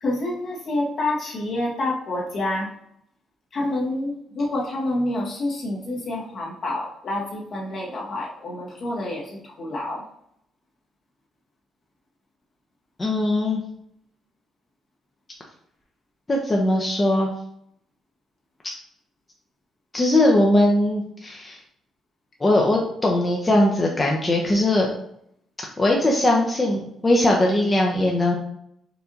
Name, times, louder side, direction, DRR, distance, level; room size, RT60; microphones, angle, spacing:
voice 1, 0.0-2.7 3.5-10.0, left 1 dB, 55° left, -3 dB, 1.5 m, -28 dB
voice 2, 13.0-13.6 16.3-17.3 19.9-21.6 22.4-24.9 25.8-28.3, left 1 dB, 25° left, -1 dB, 0.7 m, -20 dB
4.6 x 2.7 x 4.0 m, 0.72 s
cardioid pair, 90°, 0 cm